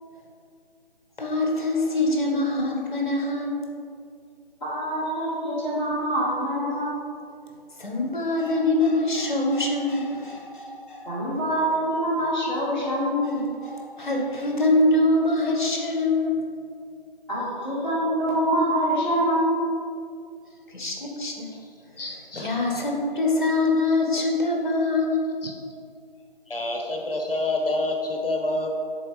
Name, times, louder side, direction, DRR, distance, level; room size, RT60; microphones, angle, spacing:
voice 1, 1.2-3.6 7.8-11.1 13.7-16.4 20.7-21.5 22.4-25.2, left 2 dB, 55° left, 0 dB, 1.4 m, -24 dB
voice 2, 4.6-7.1 11.0-13.4 17.3-19.7, equal, 5° left, -13 dB, 1.1 m, -25 dB
voice 3, 22.0-22.8 25.4-25.5 26.5-28.7, left 2 dB, 70° left, 2 dB, 1.0 m, -28 dB
7.4 x 3.7 x 5.0 m, 2.4 s
figure-of-eight pair, 155°, 29 cm